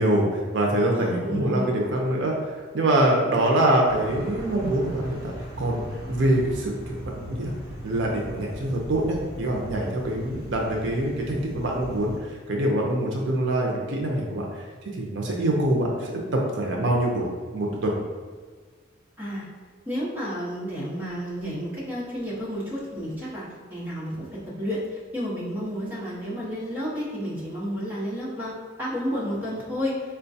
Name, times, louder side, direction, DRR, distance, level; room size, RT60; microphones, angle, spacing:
voice 1, 0.0-5.8 6.1-7.5 7.8-17.3 17.5-18.0, right 1 dB, 65° right, -1 dB, 0.5 m, -25 dB
voice 2, 0.9-1.7 19.2-19.5 19.9-28.5 28.8-30.0, equal, 10° right, -8 dB, 0.9 m, -31 dB
sound 1, 3.8-12.2, equal, 55° left, 1.3 m, -38 dB
4.4 x 2.2 x 2.6 m, 1.5 s
head